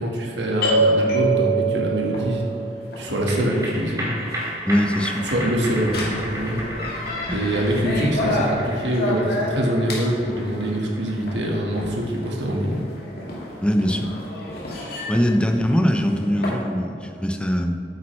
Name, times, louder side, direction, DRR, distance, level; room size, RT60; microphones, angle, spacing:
voice 1, 0.0-2.4 3.0-4.1 5.2-6.5 7.3-12.8, right 1 dB, 90° right, -1 dB, 1.6 m, -24 dB
sound 1, 0.6-16.6, right 1 dB, 60° left, 1.9 m, -28 dB
sound 2, 3.0-15.7 16.0-16.1, equal, 20° right, 2.1 m, -35 dB
voice 2, 4.7-5.2 7.3-7.4 13.6-14.1 15.1-17.7, equal, 5° left, 4 dB, 0.6 m, -21 dB
8.9 x 8.4 x 3.2 m, 2.6 s
head